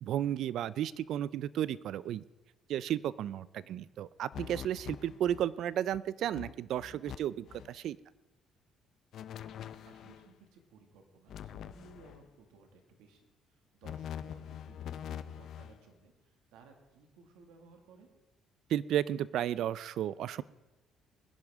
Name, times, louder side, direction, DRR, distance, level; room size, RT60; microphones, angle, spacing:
voice 1, 0.0-2.2 2.7-8.0 18.7-20.4, right 11 dB, 70° right, 19 dB, 0.4 m, -33 dB
voice 2, 3.6-3.9 9.8-13.2 13.5-18.1, right 4 dB, 90° right, 4 dB, 2.0 m, -59 dB
sound 1, 4.3-5.5 5.9-6.0 6.3-7.2 7.4-7.8 9.1-10.3 11.3-12.3 13.8-15.8, left 9 dB, 65° left, 0.6 m, -44 dB
22.0 x 10.5 x 3.6 m, 1.1 s
cardioid pair, 95°, 0 cm